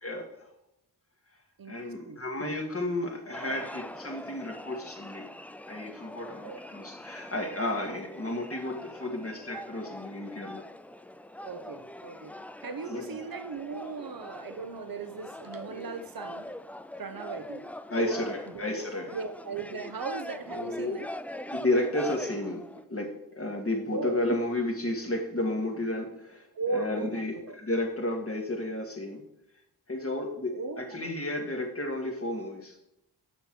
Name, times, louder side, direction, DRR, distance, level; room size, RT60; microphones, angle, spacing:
voice 1, 0.0-0.5 1.7-5.3 5.7-10.6 12.9-13.2 17.9-19.1 20.5-21.0 21.5-26.5 26.7-29.2 29.9-32.8, left 1 dB, 30° left, 2 dB, 2.0 m, -32 dB
voice 2, 1.6-2.2 6.4-6.6 11.4-12.3 12.6-16.5 17.0-17.7 18.0-18.6 19.1-21.1 23.9-24.2 26.5-27.6 30.5-31.1, right 4 dB, 55° right, 8 dB, 1.0 m, -37 dB
sound 1, 3.3-22.9, left 1 dB, 5° left, 0.3 m, -43 dB
7.0 x 5.7 x 4.5 m, 0.84 s
cardioid pair, 40°, 42 cm